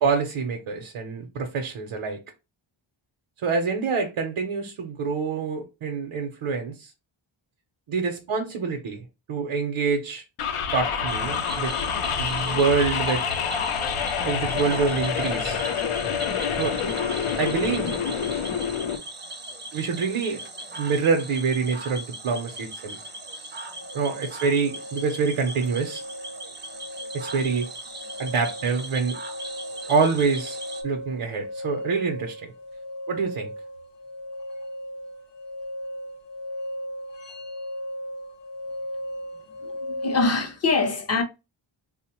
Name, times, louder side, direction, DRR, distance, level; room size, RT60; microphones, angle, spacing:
voice 1, 0.0-2.2 3.4-6.9 7.9-10.2 10.7-11.7 12.2-13.2 14.2-15.6 16.6-16.8 17.4-18.0 19.7-20.4 20.8-23.0 23.9-26.0 27.1-27.7 28.2-29.2 29.9-30.6 30.8-32.5 33.1-33.5, right 5 dB, 70° right, 0.6 m, -26 dB
sound 1, 10.4-19.0, left 7 dB, 90° left, 0.6 m, -27 dB
Cricket / Frog, 11.1-30.8, right 2 dB, 25° right, 0.4 m, -39 dB
sound 2, 23.8-40.3, equal, 55° left, 0.8 m, -37 dB
voice 2, 39.6-41.2, left 3 dB, 30° left, 0.5 m, -24 dB
3.6 x 2.1 x 2.8 m
wide cardioid pair, 150°, 50 cm